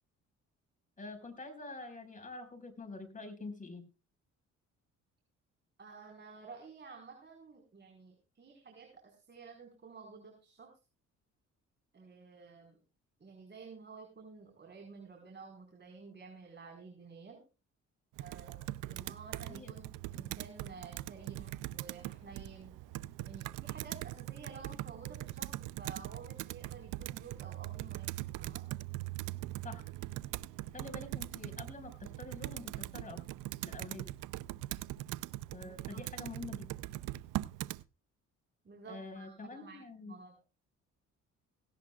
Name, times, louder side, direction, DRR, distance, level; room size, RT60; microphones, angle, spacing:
voice 1, 1.0-3.8 19.5-19.7 20.1-20.2 29.6-29.9 30.7-33.2 33.6-34.1 35.5-36.9 38.9-40.1, left 3 dB, 25° left, 3 dB, 5.0 m, -46 dB
voice 2, 5.8-10.7 11.9-12.8 13.2-17.4 18.2-22.7 23.2-28.1 28.4-28.6 35.6-36.0 38.6-40.4, right 4 dB, 35° right, 2 dB, 4.5 m, -52 dB
Computer keyboard, 18.2-37.8, right 16 dB, 85° right, 0.6 m, -41 dB
17.5 x 17.5 x 2.3 m, 0.32 s
cardioid pair, 90°, 30 cm